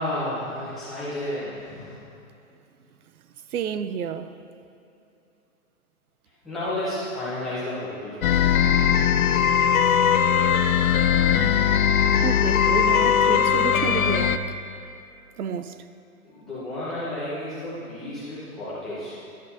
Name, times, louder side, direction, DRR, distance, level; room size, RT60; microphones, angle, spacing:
voice 1, 0.0-2.0 6.4-8.5 8.9-9.0 16.2-19.4, left 1 dB, ahead, 1.0 m, -32 dB
voice 2, 3.5-4.4 12.2-14.6 15.4-15.8, right 8 dB, 75° right, 0.6 m, -30 dB
sound 1, 8.2-14.4, left 8 dB, 70° left, 0.6 m, -20 dB
11.0 x 9.8 x 2.8 m
hypercardioid pair, 170°, 44 cm